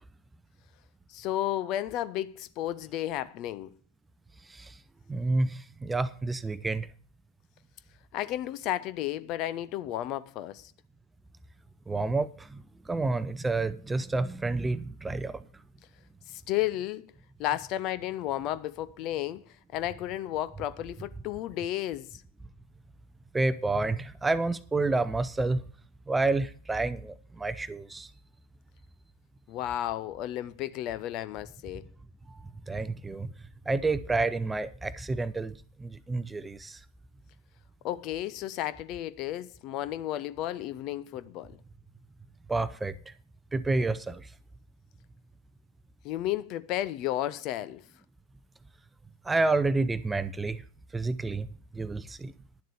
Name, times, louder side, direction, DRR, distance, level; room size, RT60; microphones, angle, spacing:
voice 1, 1.1-3.7 8.1-10.7 16.3-17.0 17.4-19.4 19.7-22.2 29.5-31.8 37.8-41.6 46.0-47.8, left 13 dB, 40° left, 0.6 m, -33 dB
voice 2, 5.1-6.9 11.9-15.4 23.3-25.6 26.1-28.1 32.3-32.4 32.7-33.3 33.7-36.8 42.5-43.0 43.5-44.3 49.2-50.6 50.9-51.5 51.7-52.3, right 3 dB, 10° right, 0.6 m, -29 dB
11.0 x 7.5 x 7.0 m
figure-of-eight pair, 90°, 0 cm